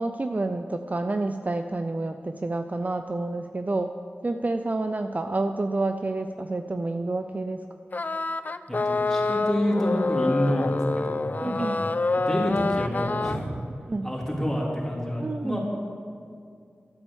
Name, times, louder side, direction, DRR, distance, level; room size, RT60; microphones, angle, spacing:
voice 1, 0.0-3.9 4.2-7.7 11.4-11.8 13.9-14.1 15.2-15.6, right 2 dB, 35° right, 7 dB, 0.5 m, -29 dB
sound 1, 7.9-13.4, left 3 dB, 40° left, 0.4 m, -27 dB
voice 2, 8.7-10.8 11.0-11.8 12.1-13.5 14.0-15.6, equal, 10° left, -4 dB, 3.6 m, -28 dB
12.5 x 8.5 x 7.2 m, 2.3 s
wide cardioid pair, 60°, 4 cm